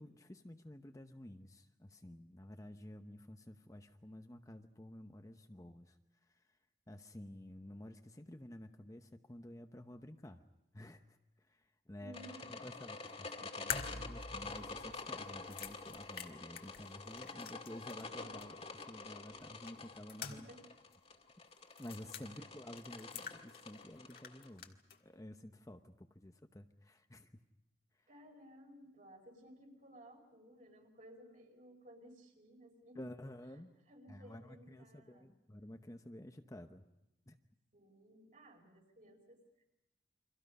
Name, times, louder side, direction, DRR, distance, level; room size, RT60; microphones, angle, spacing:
voice 1, 0.0-6.0 6.2-6.4 6.9-10.4 10.7-20.5 21.8-24.7 25.0-27.4 32.9-33.7 34.1-36.8 37.3-37.4, left 1 dB, 20° left, 5 dB, 0.9 m, -52 dB
voice 2, 12.0-12.7 17.3-17.4 19.3-19.4 20.3-20.6 22.3-22.4 28.1-33.1 33.5-35.3 37.7-39.6, right 1 dB, 45° right, 2 dB, 4.8 m, -58 dB
sound 1, 12.1-24.5, left 3 dB, 35° left, 2.1 m, -48 dB
sound 2, 13.7-18.1 18.4-18.5 19.7-20.7 20.9-21.0 21.7-22.2 22.8-23.8 24.1-25.0, left 6 dB, 55° left, 1.7 m, -46 dB
29.5 x 24.5 x 5.5 m, 0.89 s
head